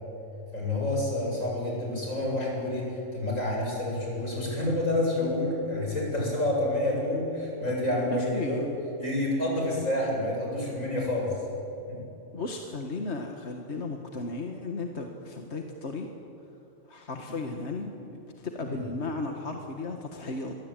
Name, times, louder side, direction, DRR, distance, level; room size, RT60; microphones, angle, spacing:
voice 1, 0.5-8.7 9.0-11.4 11.9-12.0 18.6-18.8, left 1 dB, 85° left, -2 dB, 8.4 m, -28 dB
voice 2, 8.1-8.6 12.3-16.1 16.9-20.6, left 3 dB, 55° left, 3 dB, 1.9 m, -35 dB
27.0 x 22.0 x 9.1 m, 2.9 s
omnidirectional pair, 1.3 m